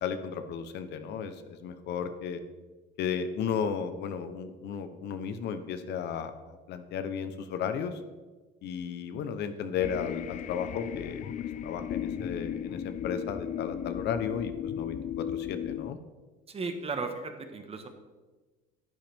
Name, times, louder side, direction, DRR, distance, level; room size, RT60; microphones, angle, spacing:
voice 1, 0.0-2.4 3.0-8.0 8.6-11.2 11.6-16.0, left 7 dB, 60° left, 9 dB, 0.9 m, -34 dB
sound 1, 9.8-15.9, left 9 dB, 40° left, 0.5 m, -36 dB
voice 2, 16.5-17.9, right 4 dB, 30° right, 6 dB, 1.3 m, -35 dB
10.5 x 9.0 x 3.5 m, 1.3 s
supercardioid pair, 95°, 20 cm